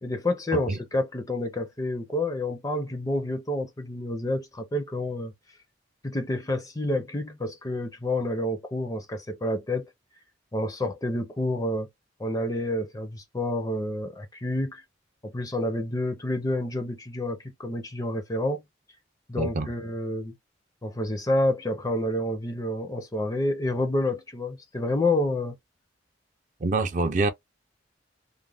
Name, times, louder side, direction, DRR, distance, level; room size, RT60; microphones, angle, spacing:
voice 1, 0.0-5.3 6.0-9.9 10.5-11.9 12.2-14.8 15.2-18.6 19.3-20.3 20.8-25.6, left 1 dB, 20° left, 0.5 m, -29 dB
voice 2, 19.4-19.7 26.6-27.3, right 3 dB, 40° right, 0.4 m, -25 dB
2.4 x 2.1 x 3.3 m
head